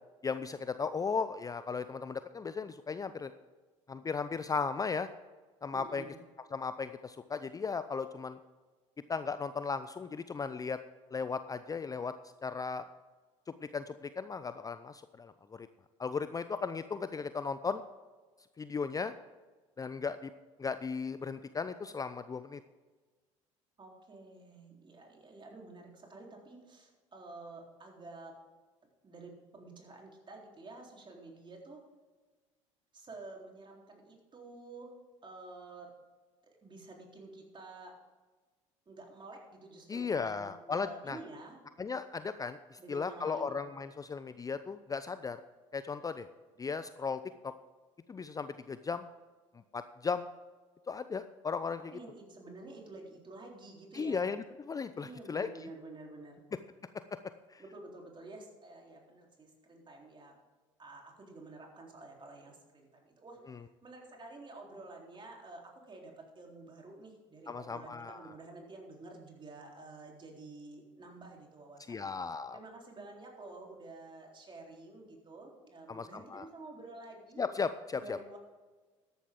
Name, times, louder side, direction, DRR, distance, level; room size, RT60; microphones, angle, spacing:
voice 1, 0.2-3.3 3.9-5.1 5.6-6.0 6.5-8.4 9.1-10.8 11.1-12.1 12.4-12.8 13.7-15.7 16.0-17.8 18.6-19.1 19.8-20.3 20.6-22.6 39.9-41.2 41.8-45.4 45.7-46.3 46.6-47.5 48.1-49.0 49.7-50.3 50.9-52.0 53.9-55.7 57.5-57.6 63.5-63.6 67.5-68.3 71.9-72.6 75.9-76.5 77.4-78.2, left 5 dB, 20° left, 12 dB, 0.5 m, -36 dB
voice 2, 5.7-6.2 23.8-28.4 29.0-31.8 32.9-34.9 35.2-35.9 36.6-38.0 38.9-41.6 42.8-43.6 51.9-54.2 55.0-56.4 57.6-60.3 60.8-63.4 63.8-72.2 72.5-77.5 77.9-78.4, right 2 dB, 30° right, 0 dB, 3.7 m, -50 dB
13.5 x 11.0 x 3.7 m, 1.4 s
hypercardioid pair, 65°, 16 cm